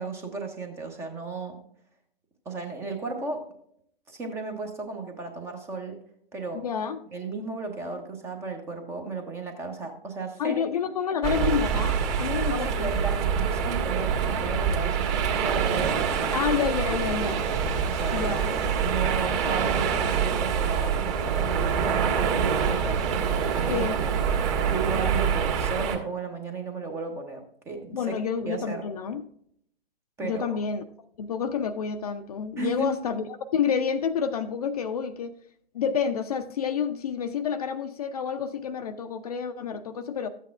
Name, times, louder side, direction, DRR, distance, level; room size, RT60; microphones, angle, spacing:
voice 1, 0.0-1.6 2.5-3.5 4.1-6.0 6.3-6.6 7.1-10.6 12.5-16.4 17.8-23.9 24.7-28.2 28.5-28.9 30.2-30.5 32.6-33.0, right 3 dB, 10° right, 5 dB, 0.6 m, -34 dB
voice 2, 6.5-7.0 10.4-12.9 16.3-17.4 18.1-18.5 23.7-24.0 27.9-29.2 30.2-30.8 31.2-35.3 35.7-40.3, left 7 dB, 40° left, 9 dB, 0.5 m, -29 dB
sound 1, 11.2-26.0, right 7 dB, 30° right, 1.5 m, -26 dB
13.0 x 8.2 x 2.4 m, 0.66 s
figure-of-eight pair, 125°, 31 cm